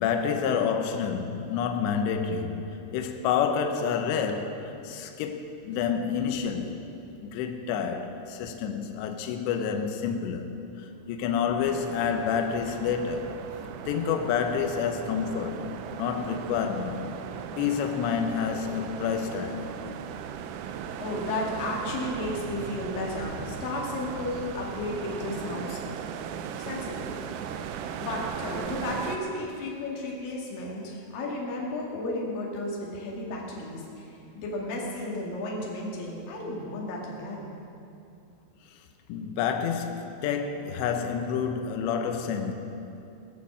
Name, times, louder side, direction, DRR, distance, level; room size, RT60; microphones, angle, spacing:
voice 1, 0.0-6.7 7.2-10.6 11.1-13.4 13.9-17.0 17.6-19.7 39.1-42.5, left 7 dB, 75° left, 2.9 m, -28 dB
sound 1, 11.6-29.2, right 8 dB, 90° right, 3.2 m, -37 dB
voice 2, 21.0-25.8 26.6-27.1 27.5-37.6, left 2 dB, 55° left, 3.5 m, -33 dB
20.5 x 7.7 x 7.4 m
omnidirectional pair, 5.4 m